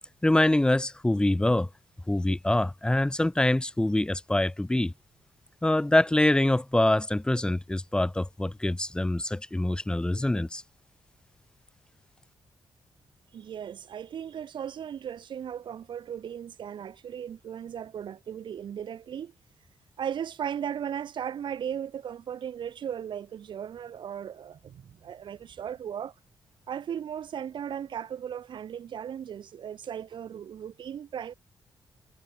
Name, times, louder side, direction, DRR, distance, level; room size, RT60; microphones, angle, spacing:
voice 1, 0.2-1.7 2.1-4.9 5.6-10.6, left 1 dB, 10° left, 0.5 m, -25 dB
voice 2, 13.3-19.3 20.0-26.1 26.7-31.3, right 9 dB, 65° right, 1.0 m, -36 dB
cardioid pair, 60°, 9 cm